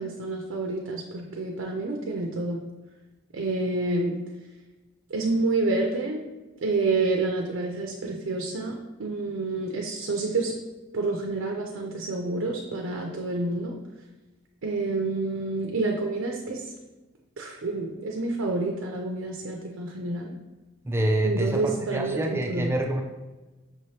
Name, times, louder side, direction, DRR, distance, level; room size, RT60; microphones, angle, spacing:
voice 1, 0.0-2.6 3.3-4.1 5.1-6.2 6.6-8.7 9.0-10.5 10.9-13.7 14.6-16.7 17.4-20.4 21.2-22.7, right 3 dB, 75° right, 1 dB, 0.5 m, -28 dB
voice 2, 20.8-23.0, right 1 dB, 10° right, 2 dB, 0.4 m, -26 dB
6.0 x 2.8 x 3.2 m, 1.1 s
head